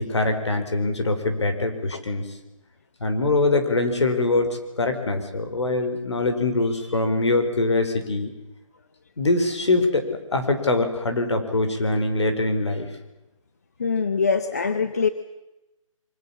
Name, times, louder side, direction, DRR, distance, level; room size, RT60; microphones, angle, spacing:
voice 1, 0.0-2.2 3.0-8.3 9.2-12.9, left 2 dB, 55° left, 7 dB, 5.0 m, -23 dB
voice 2, 13.8-15.1, left 5 dB, 30° left, 11 dB, 0.9 m, -23 dB
24.5 x 24.5 x 7.3 m, 0.98 s
hypercardioid pair, 175°, 17 cm